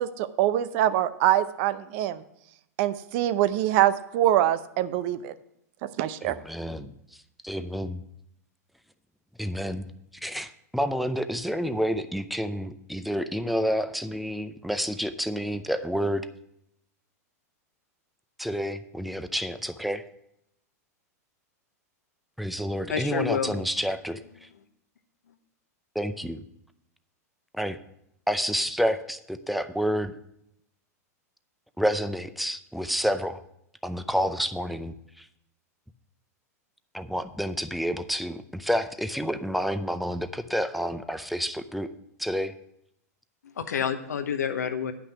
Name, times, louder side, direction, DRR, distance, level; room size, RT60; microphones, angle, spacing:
voice 1, 0.0-2.2 2.8-5.3 6.0-6.3, right 13 dB, 50° right, 14 dB, 0.6 m, -24 dB
voice 2, 6.2-6.9 7.4-8.0 9.4-9.9 10.2-16.3 18.4-20.0 22.4-24.5 25.9-26.4 27.5-27.8 28.3-30.1 31.8-33.4 33.8-35.3 36.9-41.9 42.2-42.5, equal, ahead, 10 dB, 0.6 m, -29 dB
voice 3, 22.9-23.5 43.6-44.9, left 7 dB, 85° left, 8 dB, 1.0 m, -28 dB
9.8 x 6.0 x 5.9 m, 0.77 s
hypercardioid pair, 105°, 9 cm